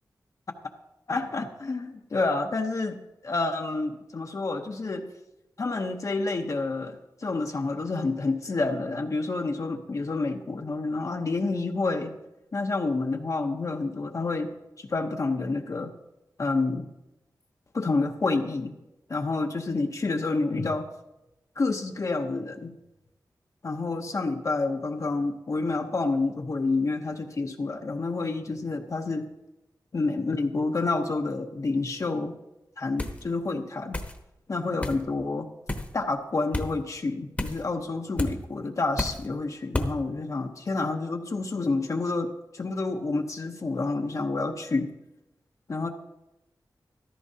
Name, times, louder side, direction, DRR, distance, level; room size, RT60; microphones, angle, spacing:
voice 1, 1.1-5.1 5.6-12.2 12.5-15.9 16.4-16.9 17.7-18.7 19.1-20.9 21.6-22.7 23.6-29.3 29.9-32.3 32.8-34.0 34.5-35.5 35.9-44.9 45.7-45.9, left 3 dB, 45° left, 4 dB, 0.8 m, -29 dB
sound 1, 33.0-33.2 33.9-34.2 34.8-35.0 35.7-35.9 36.5-36.7 37.4-37.6 38.2-38.4 39.0-39.3 39.7-39.9, left 1 dB, 20° left, 1.0 m, -30 dB
14.5 x 13.0 x 2.8 m, 0.94 s
wide cardioid pair, 125°, 7 cm